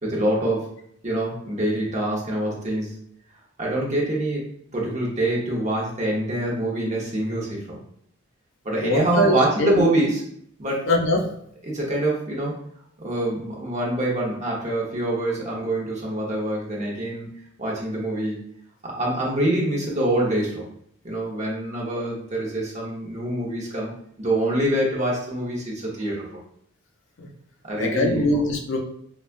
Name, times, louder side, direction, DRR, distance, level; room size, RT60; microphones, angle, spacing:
voice 1, 0.0-0.7 1.0-3.0 3.6-4.4 4.7-7.8 8.6-10.2 10.6-10.9 11.6-12.6 13.0-17.3 17.6-18.4 18.8-20.7 21.0-23.9 24.2-26.4 27.6-28.3, right 1 dB, 35° right, -3 dB, 1.0 m, -25 dB
voice 2, 8.8-9.3 9.6-9.8 10.9-11.3 27.2-27.3 27.8-28.8, left 1 dB, 60° left, 2 dB, 0.6 m, -22 dB
5.1 x 2.3 x 2.5 m, 0.68 s
head